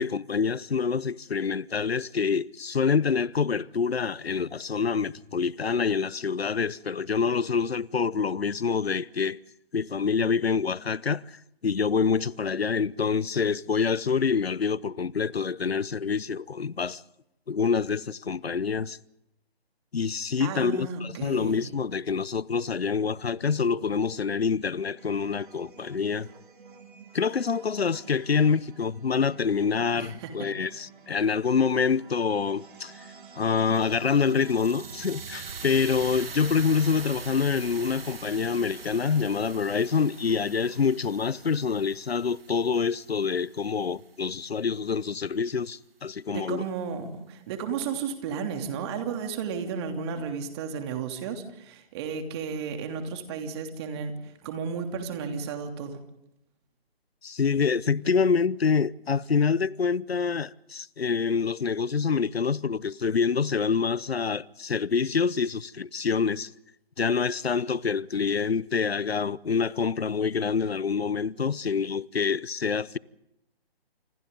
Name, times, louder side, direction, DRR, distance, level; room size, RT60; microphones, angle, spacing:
voice 1, 0.0-9.4 9.7-17.0 17.5-19.0 19.9-26.3 27.1-33.1 33.4-46.6 57.2-66.5 67.0-73.0, left 5 dB, 80° left, 0.8 m, -26 dB
voice 2, 20.4-21.6 30.0-30.5 46.3-56.0, right 6 dB, 25° right, 3.0 m, -33 dB
sound 1, 25.0-40.9, right 6 dB, 55° right, 3.7 m, -51 dB
sound 2, 33.7-43.9, right 5 dB, 70° right, 1.6 m, -43 dB
30.0 x 28.5 x 3.9 m
figure-of-eight pair, 145°, 31 cm